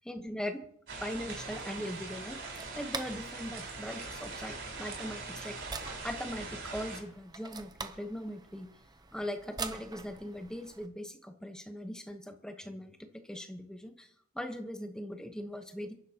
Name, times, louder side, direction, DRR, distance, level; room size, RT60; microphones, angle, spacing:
voice 1, 0.1-0.6 1.0-5.5 6.0-8.7 9.1-13.0 13.3-14.1 14.3-15.9, equal, 5° left, 5 dB, 1.0 m, -40 dB
sound 1, 0.9-7.0, right 3 dB, 60° right, 4.6 m, -42 dB
sound 2, 1.5-10.9, right 4 dB, 20° right, 0.7 m, -46 dB
28.0 x 11.0 x 2.9 m, 0.72 s
head